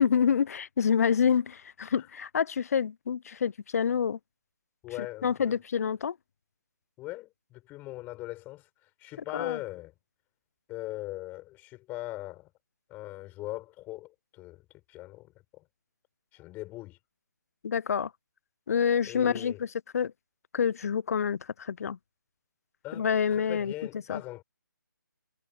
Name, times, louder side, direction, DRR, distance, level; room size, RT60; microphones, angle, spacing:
voice 1, 0.0-4.2 5.2-6.2 9.3-9.6 17.6-18.1 18.7-20.1 20.5-22.0 22.9-23.7 24.1-24.2, left 7 dB, 45° left, 0.6 m, -27 dB
voice 2, 4.8-5.5 7.0-8.7 9.0-9.9 10.7-12.5 12.9-14.6 14.9-15.6 16.3-17.0 19.1-19.6 22.8-24.4, left 18 dB, 15° left, 6.9 m, -40 dB
figure-of-eight pair, 150°, 11 cm